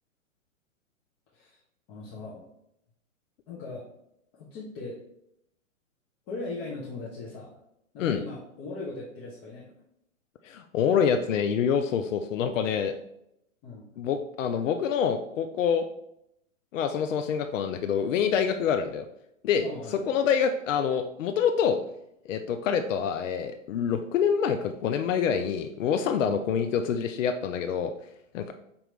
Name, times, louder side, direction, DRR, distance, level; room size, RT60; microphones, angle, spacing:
voice 1, 1.9-2.5 3.5-3.8 4.3-5.0 6.3-7.6 7.9-9.7 13.6-13.9 19.6-20.1, left 3 dB, 35° left, -5 dB, 1.0 m, -39 dB
voice 2, 10.4-13.0 14.0-15.9 16.7-19.0 19.4-19.6 20.1-21.8 22.3-27.9 28.3-28.5, left 7 dB, 70° left, 7 dB, 0.5 m, -26 dB
5.3 x 2.9 x 3.2 m, 0.78 s
hypercardioid pair, 110°, 40 cm